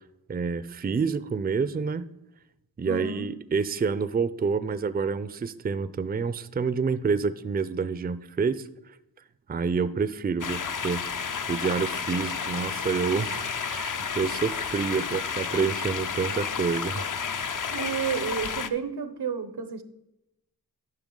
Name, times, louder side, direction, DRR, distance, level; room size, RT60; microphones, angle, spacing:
voice 1, 0.3-2.1 2.8-8.7 9.5-11.0 11.5-17.2, right 5 dB, 25° right, 15 dB, 0.4 m, -28 dB
voice 2, 2.8-3.3 17.7-19.8, right 6 dB, 90° right, 10 dB, 0.8 m, -31 dB
sound 1, 10.4-18.7, left 6 dB, 55° left, 0.5 m, -31 dB
10.5 x 5.7 x 3.8 m, 0.89 s
wide cardioid pair, 55°, 38 cm